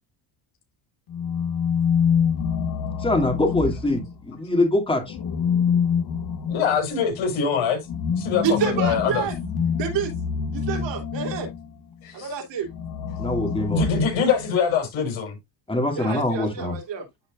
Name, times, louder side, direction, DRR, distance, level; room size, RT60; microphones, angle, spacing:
sound 1, 1.1-4.4 5.1-11.7 12.7-14.6, left 7 dB, 50° left, 2.2 m, -26 dB
voice 1, 3.0-5.2 13.2-13.9 15.7-16.8, left 2 dB, 10° left, 2.5 m, -23 dB
voice 2, 6.5-7.8 8.1-9.2 12.0-12.2 13.7-15.4, left 6 dB, 70° left, 4.8 m, -23 dB
voice 3, 8.4-9.4 9.8-10.1 10.5-11.5 12.1-12.7 15.9-17.1, right 8 dB, 65° right, 3.2 m, -28 dB
13.0 x 4.4 x 2.5 m
cardioid pair, 115°, 48 cm